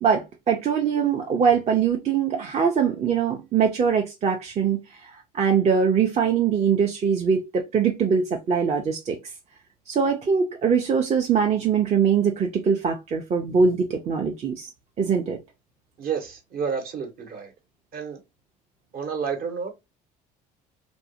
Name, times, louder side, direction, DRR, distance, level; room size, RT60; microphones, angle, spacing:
voice 1, 0.0-9.2 9.9-14.7 15.0-15.4, right 6 dB, 35° right, 0.5 m, -22 dB
voice 2, 16.0-17.5 17.9-18.2 18.9-19.7, right 6 dB, 55° right, 0.9 m, -30 dB
2.6 x 2.0 x 2.6 m
hypercardioid pair, 75°, 19 cm